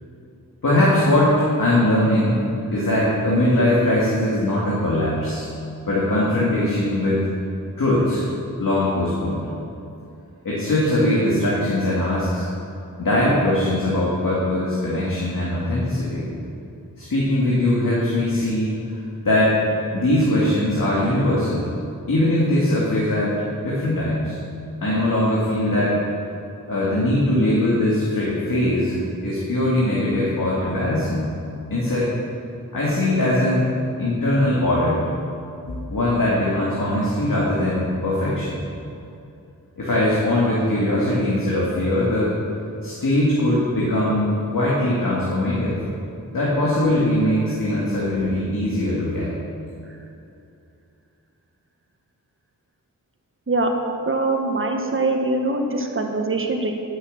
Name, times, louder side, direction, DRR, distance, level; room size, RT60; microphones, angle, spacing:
voice 1, 0.6-2.4 2.7-5.5 5.9-7.3 7.8-8.3 8.6-9.4 10.4-12.4 13.0-16.3 17.0-19.5 19.9-21.7 22.1-23.4 23.6-24.4 24.8-26.0 26.7-31.3 31.7-32.1 32.7-33.7 34.0-35.1 35.7-38.6 39.8-42.4 42.8-45.8 46.3-49.4, left 1 dB, 75° left, -7 dB, 2.1 m, -21 dB
voice 2, 54.1-56.7, right 2 dB, 40° right, 3 dB, 1.4 m, -23 dB
9.9 x 6.5 x 6.7 m, 2.6 s
cardioid pair, 50°, 33 cm